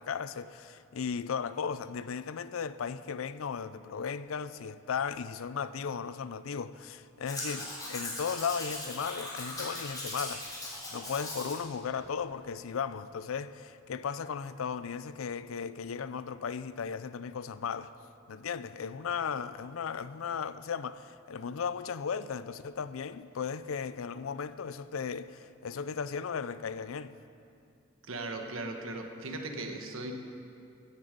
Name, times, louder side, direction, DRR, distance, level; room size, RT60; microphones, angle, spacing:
voice 1, 0.0-17.9 18.3-27.1, left 6 dB, 80° left, 0.5 m, -36 dB
Domestic sounds home sounds, 7.3-11.6 12.0-12.1, left 1 dB, 20° left, 3.3 m, -39 dB
voice 2, 28.1-30.1, right 2 dB, 80° right, 1.3 m, -38 dB
16.0 x 9.5 x 5.2 m
head